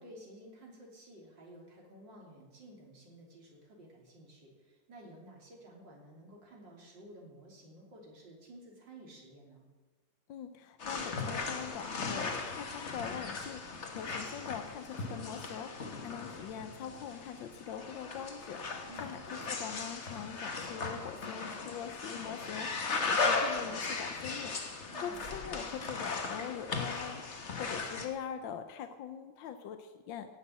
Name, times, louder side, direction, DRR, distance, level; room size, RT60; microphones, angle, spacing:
voice 1, 0.0-9.6 18.9-19.2 24.9-25.6, right 1 dB, 75° right, -1 dB, 3.8 m, -53 dB
voice 2, 10.3-30.4, left 8 dB, 85° left, 8 dB, 1.5 m, -43 dB
sound 1, 10.8-28.1, left 4 dB, 40° left, 1.6 m, -37 dB
16.0 x 6.7 x 8.6 m, 1.3 s
omnidirectional pair, 2.0 m